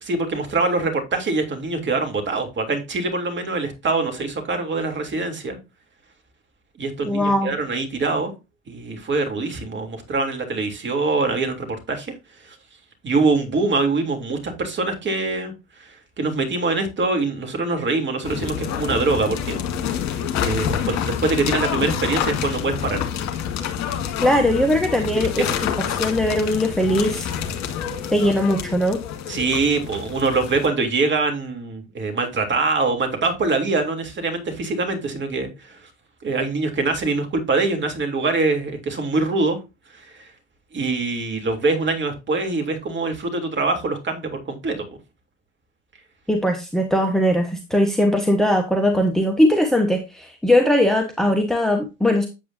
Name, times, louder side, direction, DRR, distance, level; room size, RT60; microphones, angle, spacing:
voice 1, 0.0-5.6 6.8-8.3 8.7-12.1 12.4-12.5 13.0-15.5 15.8-15.9 16.2-19.6 20.4-23.0 25.2-25.3 29.3-35.8 36.2-39.6 40.7-45.0, right 3 dB, 30° right, 5 dB, 3.2 m, -24 dB
voice 2, 7.0-7.5 24.2-25.5 25.9-27.3 28.1-29.0 46.3-52.3, left 1 dB, ahead, 5 dB, 1.3 m, -20 dB
sound 1, 18.2-30.7, left 8 dB, 45° left, 2.0 m, -27 dB
8.5 x 8.4 x 2.7 m, 0.25 s
figure-of-eight pair, 65°, 38 cm